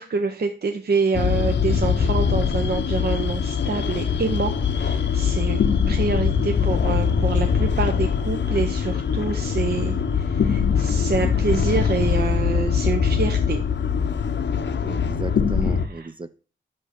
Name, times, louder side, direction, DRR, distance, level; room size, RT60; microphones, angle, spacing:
voice 1, 0.0-13.6 16.0-16.1, right 4 dB, 55° right, 6 dB, 0.8 m, -26 dB
sound 1, 1.1-15.9, left 6 dB, 70° left, 0.7 m, -22 dB
voice 2, 14.8-16.4, right 3 dB, 25° right, 11 dB, 0.4 m, -35 dB
5.5 x 5.3 x 6.4 m, 0.38 s
cardioid pair, 60°, 19 cm